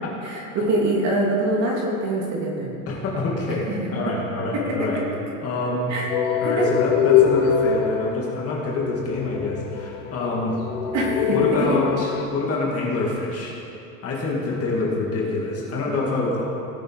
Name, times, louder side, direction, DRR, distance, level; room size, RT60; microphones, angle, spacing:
voice 1, 0.2-2.7 3.7-3.9 4.6-5.0 5.9-6.7 10.9-11.8, right 2 dB, 40° right, -2 dB, 2.8 m, -24 dB
voice 2, 2.9-5.0 5.4-5.9 6.4-10.6 11.3-13.6 14.0-16.4, left 2 dB, 30° left, -4 dB, 2.5 m, -26 dB
sound 1, 6.1-12.2, left 8 dB, 60° left, 1.3 m, -23 dB
18.5 x 6.8 x 4.8 m, 2.8 s
supercardioid pair, 135°, 44 cm